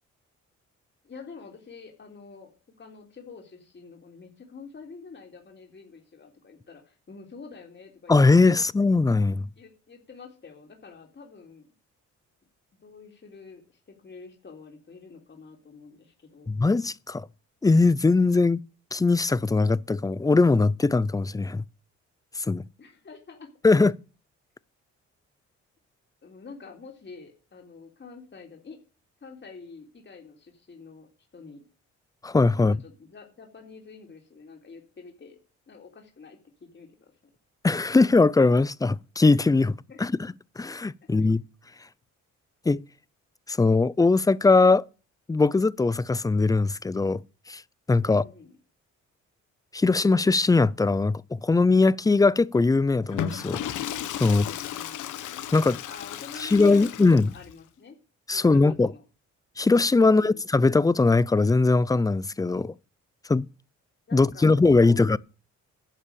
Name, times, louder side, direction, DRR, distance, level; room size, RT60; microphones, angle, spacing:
voice 1, 1.0-2.5 2.8-8.7 9.6-11.7 12.8-16.5 22.8-23.5 26.2-28.8 29.2-31.1 31.3-31.6 32.5-35.4 35.7-37.1 39.9-40.0 41.2-41.3 48.0-48.6 54.2-55.0 55.9-58.0 58.3-59.0 60.0-60.4 64.1-65.2, left 4 dB, 35° left, 3.6 m, -47 dB
voice 2, 8.1-9.5 16.5-17.3 17.6-18.6 18.9-21.6 22.4-22.6 23.6-23.9 32.2-32.8 37.6-40.1 40.6-41.4 42.7-42.8 43.5-44.9 45.3-47.2 47.5-47.6 47.9-48.2 49.7-53.6 54.1-54.4 55.5-55.8 56.4-57.3 58.3-58.9 59.6-62.7 63.3-63.5 64.1-65.2, left 3 dB, 10° left, 0.5 m, -21 dB
Water / Toilet flush, 53.0-57.5, left 10 dB, 80° left, 1.4 m, -35 dB
11.0 x 7.2 x 6.9 m
cardioid pair, 90°, 30 cm